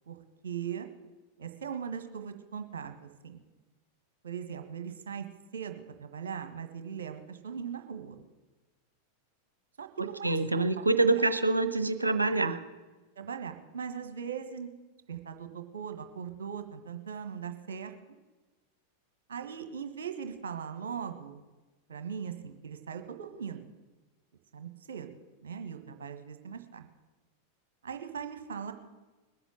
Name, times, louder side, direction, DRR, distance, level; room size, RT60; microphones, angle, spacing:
voice 1, 0.4-0.9 1.4-3.4 4.2-5.3 5.5-8.2 9.8-10.8 11.1-11.3 13.2-14.7 15.1-17.9 19.3-21.4 21.9-23.7 24.5-25.1 25.4-26.9 27.8-28.7, right 7 dB, 65° right, 7 dB, 1.5 m, -39 dB
voice 2, 10.2-12.6, right 3 dB, 80° right, 10 dB, 0.9 m, -26 dB
20.5 x 8.0 x 7.7 m, 1.2 s
figure-of-eight pair, 90°, 0 cm